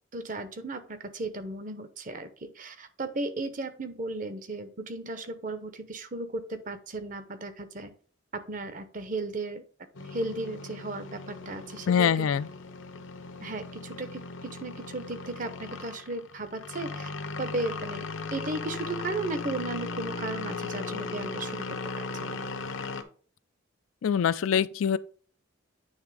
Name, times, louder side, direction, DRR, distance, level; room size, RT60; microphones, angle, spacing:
voice 1, 0.1-7.9 8.3-9.6 10.0-12.3 13.4-17.1 17.4-22.4, right 2 dB, 40° right, 0.7 m, -35 dB
sound 1, 9.9-23.0, left 3 dB, 70° left, 0.7 m, -37 dB
voice 2, 11.9-12.5 24.0-25.0, left 7 dB, 85° left, 0.4 m, -24 dB
9.0 x 3.4 x 4.8 m
head